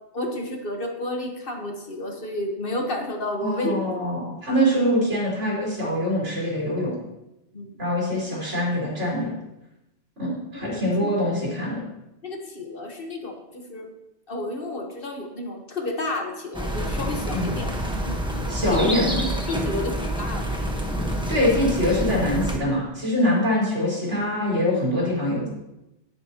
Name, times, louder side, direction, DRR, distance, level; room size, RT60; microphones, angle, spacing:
voice 1, 0.1-3.8 7.5-7.7 10.5-11.3 12.2-13.9 14.3-17.7 18.0-18.9 19.5-20.6, left 1 dB, 50° left, 2 dB, 1.4 m, -31 dB
voice 2, 3.4-6.9 7.8-9.3 10.2-11.8 17.3-17.5 18.5-19.3 21.3-25.5, left 1 dB, 75° right, -6 dB, 4.8 m, -24 dB
sound 1, 16.5-22.6, equal, 5° right, 1.1 m, -27 dB
11.0 x 10.5 x 2.9 m, 0.93 s
omnidirectional pair, 1.2 m